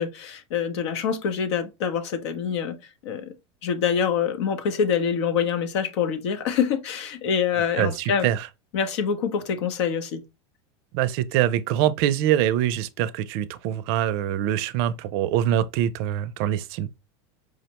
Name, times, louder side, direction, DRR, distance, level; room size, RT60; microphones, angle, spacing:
voice 1, 0.0-2.8 3.0-3.3 3.6-8.3 8.7-10.2, left 7 dB, 80° left, 0.8 m, -25 dB
voice 2, 7.7-8.5 10.9-16.9, right 11 dB, 60° right, 0.4 m, -24 dB
4.9 x 2.1 x 2.9 m
supercardioid pair, 140°, 15 cm